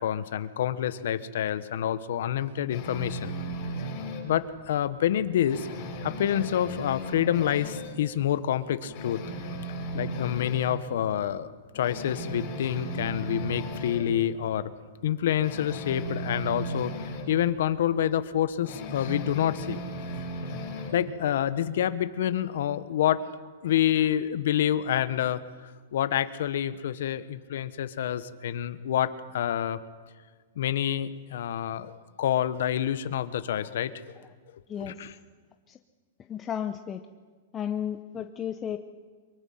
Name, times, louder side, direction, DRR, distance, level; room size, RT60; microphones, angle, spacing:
voice 1, 0.0-3.4 4.2-5.7 6.0-9.2 9.9-11.5 11.7-14.7 15.0-16.9 17.3-19.8 20.9-23.3 23.6-25.4 25.9-29.8 30.6-31.9 32.2-33.9 34.8-35.1, left 10 dB, 65° left, 13 dB, 1.1 m, -27 dB
sound 1, 2.7-4.3 4.7-4.9 5.2-8.0 8.3-8.4 8.8-10.7 11.2-11.3 11.7-14.1 15.4-17.3 18.6-21.0, right 1 dB, 40° left, 7.6 m, -36 dB
voice 2, 36.3-37.0 37.5-38.8, left 9 dB, 20° left, 6 dB, 0.7 m, -33 dB
23.5 x 23.0 x 5.8 m, 1.5 s
hypercardioid pair, 155°, 0 cm